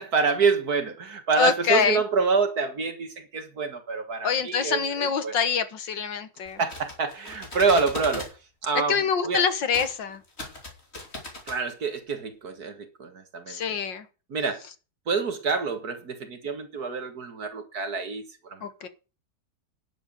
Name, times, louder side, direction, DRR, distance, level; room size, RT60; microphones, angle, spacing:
voice 1, 0.0-5.4 6.6-8.3 8.6-9.4 11.5-13.6 14.3-14.6 15.1-18.6, right 4 dB, 50° right, 2.0 m, -27 dB
voice 2, 1.4-2.0 4.2-6.6 8.9-10.2 13.5-14.0 18.6-18.9, left 6 dB, 65° left, 1.9 m, -25 dB
sound 1, 6.5-8.3 9.7-9.9 10.2-11.6, left 2 dB, 30° left, 3.5 m, -38 dB
10.5 x 7.5 x 6.5 m
omnidirectional pair, 2.2 m